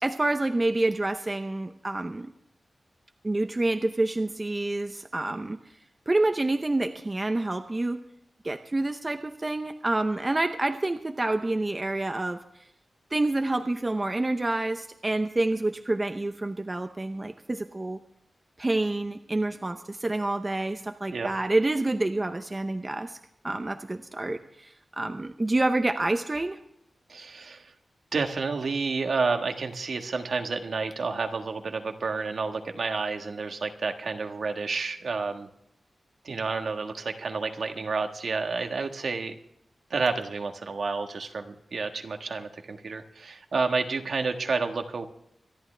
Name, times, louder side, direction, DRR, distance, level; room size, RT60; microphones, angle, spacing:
voice 1, 0.0-2.3 3.2-5.6 6.1-8.0 8.4-12.4 13.1-18.0 18.6-23.2 23.4-26.6, right 2 dB, 20° right, 7 dB, 0.7 m, -28 dB
voice 2, 27.1-27.7 28.1-35.5 36.2-39.3 39.9-45.1, right 4 dB, 60° right, 5 dB, 1.5 m, -30 dB
25.0 x 11.5 x 3.3 m, 0.74 s
wide cardioid pair, 165°, 0 cm